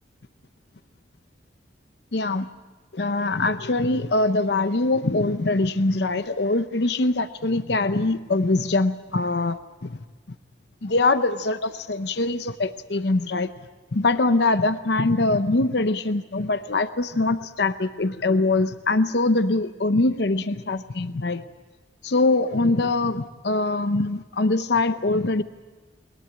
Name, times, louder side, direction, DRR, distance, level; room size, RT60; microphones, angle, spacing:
voice 1, 2.1-2.5 2.9-10.0 10.8-13.5 13.9-21.4 22.0-25.4, left 2 dB, 60° left, 11 dB, 0.8 m, -23 dB
21.0 x 21.0 x 8.8 m, 1.3 s
head